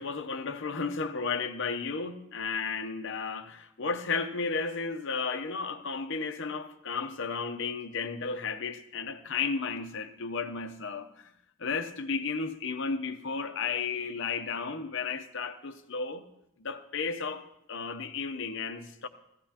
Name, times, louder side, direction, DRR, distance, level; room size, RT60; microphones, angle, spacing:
voice 1, 0.0-11.3 11.6-16.3 16.6-19.1, left 5 dB, 55° left, 0.8 m, -33 dB
15.5 x 15.5 x 2.9 m
head